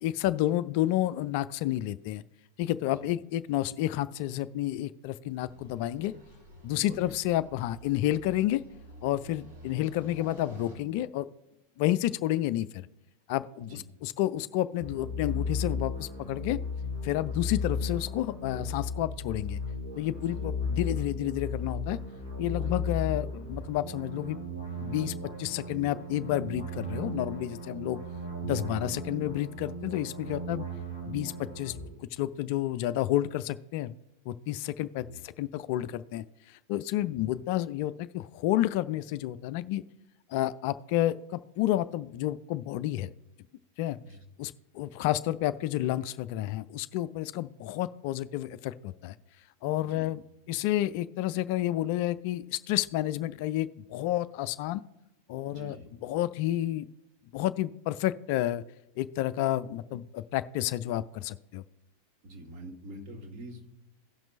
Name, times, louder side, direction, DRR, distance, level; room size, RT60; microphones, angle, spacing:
voice 1, 0.0-2.2 2.6-6.1 6.6-8.6 9.0-11.3 11.8-12.9 13.3-16.6 17.0-19.6 20.0-22.0 22.4-24.4 24.8-28.0 28.4-30.7 31.1-31.7 32.2-33.9 34.3-39.8 40.3-43.1 43.8-44.0 44.4-49.1 49.6-50.2 50.5-54.8 55.3-55.8 56.0-56.9 57.3-58.6 59.0-61.6, left 14 dB, 45° left, 14 dB, 0.3 m, -30 dB
sound 1, 5.4-10.7, right 1 dB, 65° right, 3.2 m, -50 dB
voice 2, 6.7-7.1 9.2-9.3 13.6-13.8 20.1-20.5 22.5-22.7 28.6-28.9 35.0-35.2 37.1-37.3 44.0-44.2 49.8-50.1 55.4-55.8 59.9-60.0 62.2-63.7, equal, 40° right, 1 dB, 1.8 m, -46 dB
sound 2, 14.8-31.9, left 2 dB, 85° right, 3.8 m, -35 dB
17.5 x 5.9 x 2.6 m, 0.90 s
figure-of-eight pair, 90°, 0 cm